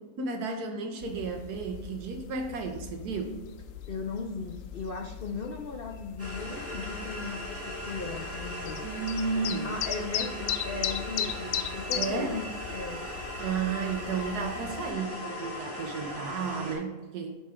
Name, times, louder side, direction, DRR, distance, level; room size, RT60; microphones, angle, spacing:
voice 1, 0.2-3.4 8.8-9.8 11.9-12.4 13.4-17.3, right 4 dB, 75° right, 4 dB, 1.4 m, -33 dB
sound 1, 1.0-14.9, left 9 dB, 70° left, 0.8 m, -38 dB
voice 2, 3.9-8.9 9.6-13.0 14.7-14.8, left 4 dB, 90° left, 3 dB, 0.5 m, -37 dB
sound 2, 6.2-16.8, equal, 10° right, 1.7 m, -38 dB
7.3 x 4.4 x 3.6 m, 1.2 s
omnidirectional pair, 1.7 m